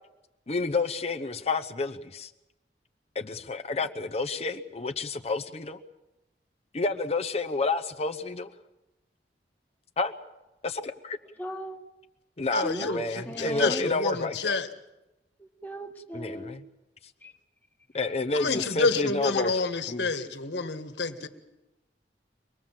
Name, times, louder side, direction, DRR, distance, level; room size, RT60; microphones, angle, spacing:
voice 1, 0.5-2.3 3.1-5.8 6.7-8.5 10.0-10.1 10.6-11.2 12.4-14.6 16.1-16.6 17.9-19.5 19.9-20.1, left 3 dB, 35° left, 8 dB, 0.8 m, -30 dB
voice 2, 11.4-11.8 12.6-13.9 15.6-16.6 17.2-17.3 18.5-18.6, equal, 10° left, 4 dB, 1.4 m, -37 dB
voice 3, 12.5-14.7 18.3-21.3, left 3 dB, 85° left, 9 dB, 1.7 m, -29 dB
25.0 x 20.5 x 7.5 m, 0.99 s
head